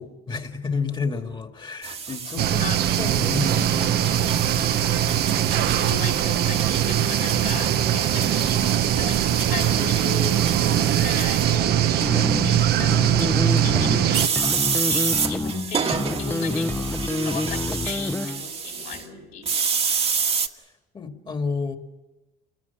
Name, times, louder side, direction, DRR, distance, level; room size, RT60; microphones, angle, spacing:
voice 1, 0.0-2.6 3.0-4.6 16.0-16.6 20.9-21.8, left 4 dB, 30° left, 6 dB, 2.2 m, -31 dB
sound 1, 1.8-11.5 14.1-19.0 19.5-20.5, right 6 dB, 35° right, 1.5 m, -29 dB
sound 2, 2.4-14.3, right 11 dB, 70° right, 0.9 m, -21 dB
voice 2, 5.5-19.5, left 5 dB, 70° left, 0 dB, 6.0 m, -36 dB
sound 3, 12.0-18.5, left 2 dB, 10° left, 0.9 m, -28 dB
28.5 x 20.5 x 7.2 m, 1.1 s
cardioid pair, 110°, 17 cm